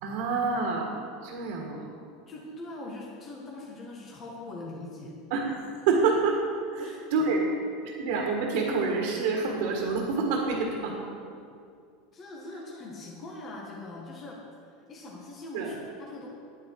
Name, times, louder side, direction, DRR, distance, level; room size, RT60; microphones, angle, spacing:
voice 1, 0.0-1.9 5.3-6.4 6.7-7.5 7.8-11.1 15.5-15.7, right 4 dB, 70° right, 0 dB, 1.7 m, -28 dB
voice 2, 2.3-5.2 6.8-7.3 12.1-14.4 14.7-16.3, left 2 dB, 35° left, -3 dB, 1.8 m, -42 dB
10.0 x 9.5 x 4.8 m, 2.4 s
supercardioid pair, 110°, 0 cm